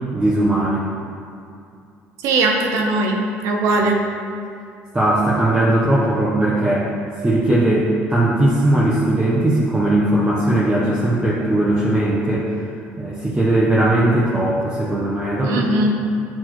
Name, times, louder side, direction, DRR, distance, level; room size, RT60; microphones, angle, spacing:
voice 1, 0.1-0.8 4.9-6.9 7.2-12.5 13.0-15.9, right 1 dB, 15° right, -7 dB, 0.9 m, -18 dB
voice 2, 2.2-4.0 15.4-15.9, right 2 dB, 75° right, 1 dB, 0.8 m, -19 dB
8.3 x 4.3 x 3.0 m, 2.5 s
cardioid pair, 105°, 5 cm